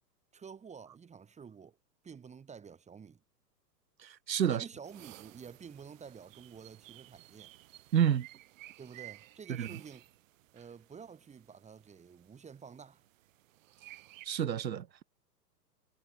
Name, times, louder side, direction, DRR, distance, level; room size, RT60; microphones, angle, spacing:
voice 1, 0.3-1.8 2.0-3.2 4.5-7.5 8.8-10.1 10.5-13.0, right 6 dB, 15° right, 3.0 m, -50 dB
voice 2, 4.0-4.6 7.9-8.3 9.6-9.7 14.2-14.9, right 9 dB, 90° right, 0.8 m, -29 dB
sound 1, 4.8-14.3, right 16 dB, 50° right, 4.0 m, -55 dB
hypercardioid pair, 115°, 49 cm